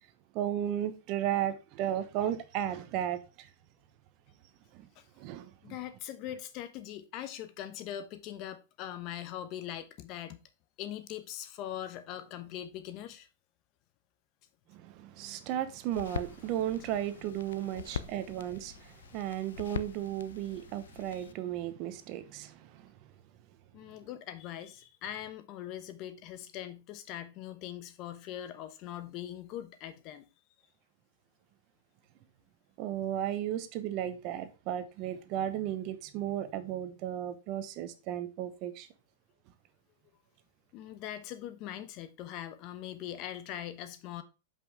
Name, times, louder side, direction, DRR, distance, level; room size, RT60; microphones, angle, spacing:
voice 1, 0.3-3.5 4.7-4.9 5.2-5.8 14.7-22.9 32.8-38.9, right 11 dB, 45° right, 1.0 m, -35 dB
voice 2, 5.6-10.4 10.8-13.3 17.7-18.0 21.1-21.2 23.7-30.3 40.7-44.2, left 11 dB, 45° left, 1.0 m, -41 dB
sound 1, 15.9-21.3, left 8 dB, 85° left, 0.5 m, -43 dB
8.0 x 5.4 x 3.6 m
hypercardioid pair, 125°, 0 cm